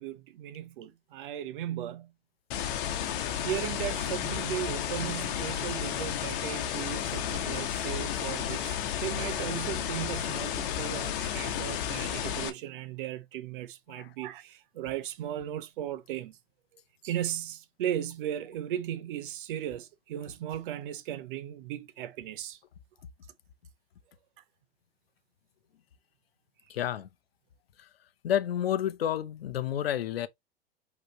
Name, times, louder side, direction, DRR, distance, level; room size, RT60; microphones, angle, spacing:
voice 1, 0.0-2.1 3.4-16.4 17.0-22.6, right 11 dB, 60° right, 0.8 m, -36 dB
sound 1, 2.5-12.5, left 10 dB, 55° left, 1.0 m, -32 dB
voice 2, 26.7-27.1 28.2-30.3, left 10 dB, 75° left, 0.7 m, -30 dB
5.1 x 3.1 x 3.0 m
figure-of-eight pair, 95°, 30 cm